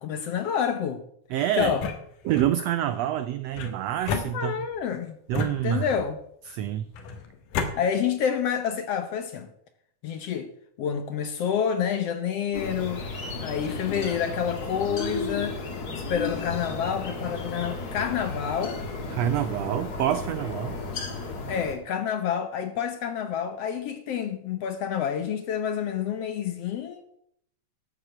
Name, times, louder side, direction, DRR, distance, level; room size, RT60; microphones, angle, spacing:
voice 1, 0.0-1.0 1.6-1.9 4.3-5.2 5.6-6.2 7.8-9.5 10.0-10.5 10.8-13.1 13.4-15.6 15.9-18.8 21.5-27.0, left 8 dB, 65° left, 8 dB, 1.7 m, -28 dB
voice 2, 1.3-1.8 2.2-4.6 5.3-5.9 6.5-6.9 19.1-20.8, right 11 dB, 80° right, 12 dB, 1.5 m, -27 dB
sound 1, 1.6-2.5 3.5-4.8 5.3-6.2 6.9-7.7, left 4 dB, 85° left, 3.1 m, -32 dB
sound 2, 12.5-21.8, left 3 dB, 40° left, 1.7 m, -34 dB
12.5 x 7.6 x 7.6 m, 0.69 s
omnidirectional pair, 3.6 m